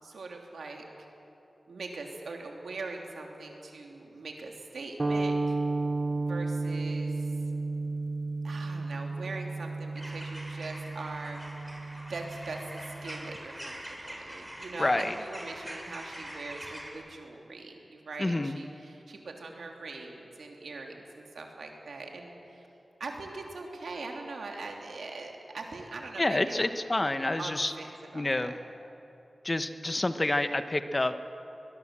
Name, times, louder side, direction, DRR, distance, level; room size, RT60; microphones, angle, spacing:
voice 1, 0.0-1.1 1.7-5.6 6.2-7.3 8.4-11.7 12.1-22.7 23.0-26.7 27.4-28.6, right 3 dB, 85° right, 1 dB, 3.1 m, -42 dB
sound 1, 5.0-13.4, right 3 dB, 45° right, 0.8 m, -33 dB
sound 2, 9.9-16.9, equal, 10° right, 5.2 m, -44 dB
voice 2, 14.8-15.1 18.2-18.6 26.2-27.7 28.1-28.5 29.4-31.2, left 2 dB, 35° left, 9 dB, 1.3 m, -28 dB
22.5 x 21.0 x 7.6 m, 2.9 s
cardioid pair, 45°, 0 cm